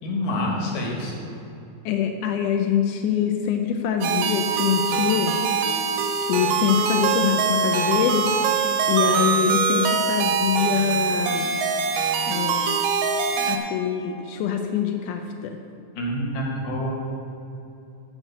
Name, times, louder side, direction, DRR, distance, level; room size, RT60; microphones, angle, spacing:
voice 1, 0.0-1.1 16.0-16.9, left 1 dB, 60° left, -1 dB, 2.7 m, -27 dB
voice 2, 1.9-5.4 6.2-11.5 12.3-12.6 13.5-15.6, left 8 dB, 80° left, 4 dB, 1.8 m, -24 dB
sound 1, 4.0-13.6, right 5 dB, 75° right, 2.2 m, -23 dB
7.4 x 6.4 x 7.9 m, 2.8 s
omnidirectional pair, 4.1 m